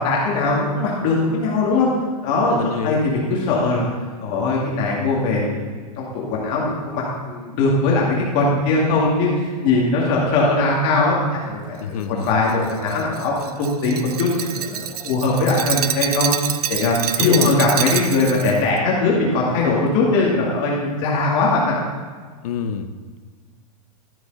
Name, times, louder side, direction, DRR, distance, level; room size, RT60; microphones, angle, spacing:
voice 1, 0.0-1.9 2.2-2.6 2.8-3.9 4.2-5.6 6.0-11.2 11.4-16.3 16.7-21.8, left 3 dB, 40° left, -4 dB, 2.3 m, -20 dB
voice 2, 2.6-3.1 11.8-12.3 17.2-17.7 22.4-22.9, left 7 dB, 70° left, 10 dB, 0.9 m, -25 dB
Glass, 12.2-18.6, right 10 dB, 75° right, 0.7 m, -26 dB
13.0 x 7.8 x 4.1 m, 1.5 s
supercardioid pair, 150°, 20 cm